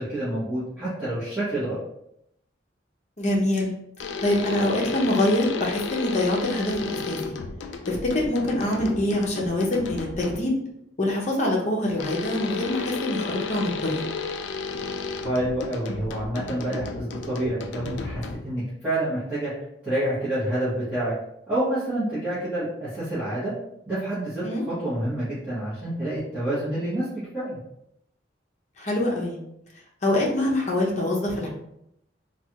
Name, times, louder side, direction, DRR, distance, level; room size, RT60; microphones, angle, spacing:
voice 1, 0.0-1.8 15.2-19.5 19.8-21.1 21.5-23.5 23.9-27.1 27.3-27.6, right 1 dB, 10° right, -13 dB, 1.0 m, -28 dB
voice 2, 3.2-3.7 4.2-7.3 7.9-10.5 11.0-14.0 24.4-24.6 28.8-29.4 30.0-31.5, left 1 dB, 40° left, -2 dB, 0.7 m, -25 dB
sound 1, 4.0-10.6 12.0-18.6, left 4 dB, 75° left, 0.3 m, -33 dB
3.2 x 2.3 x 2.8 m, 0.78 s
head